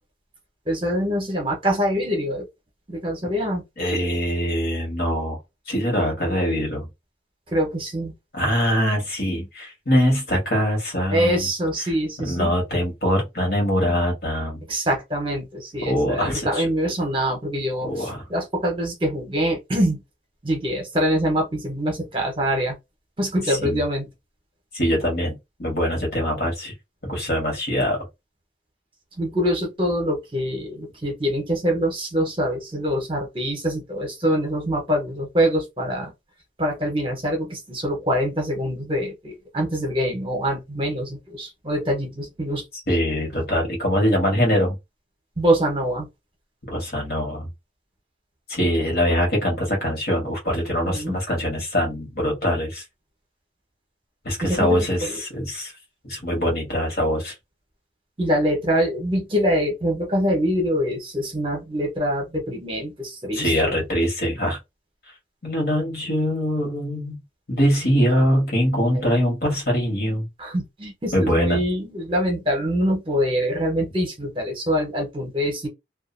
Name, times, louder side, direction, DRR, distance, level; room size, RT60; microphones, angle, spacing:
voice 1, 0.7-2.5 2.9-3.6 7.5-8.1 11.1-12.5 14.7-20.0 20.4-22.7 23.2-24.0 29.2-36.1 36.6-42.6 45.4-46.1 50.8-51.2 54.4-55.2 58.2-63.8 70.4-75.7, equal, 25° right, 0.8 m, -24 dB
voice 2, 3.8-5.4 5.7-6.9 8.3-11.5 12.2-14.6 15.8-16.7 17.8-18.2 23.5-23.8 24.7-26.7 27.0-28.1 42.9-44.8 46.7-47.5 48.5-52.8 54.2-55.7 56.0-57.3 63.3-64.6 65.4-67.2 67.5-70.3 71.1-71.6, equal, 50° left, 1.2 m, -23 dB
2.4 x 2.3 x 2.5 m
head